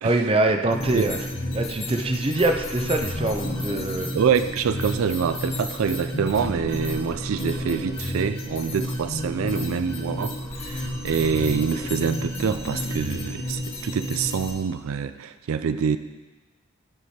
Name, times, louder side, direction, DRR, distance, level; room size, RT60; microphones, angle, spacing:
voice 1, 0.0-1.2 1.5-4.1, right 2 dB, 25° right, 5 dB, 0.5 m, -24 dB
sound 1, 0.7-14.5, left 1 dB, 30° left, 1.4 m, -31 dB
voice 2, 4.1-16.0, right 6 dB, 80° right, 11 dB, 0.4 m, -26 dB
12.5 x 4.8 x 4.3 m, 1.2 s
head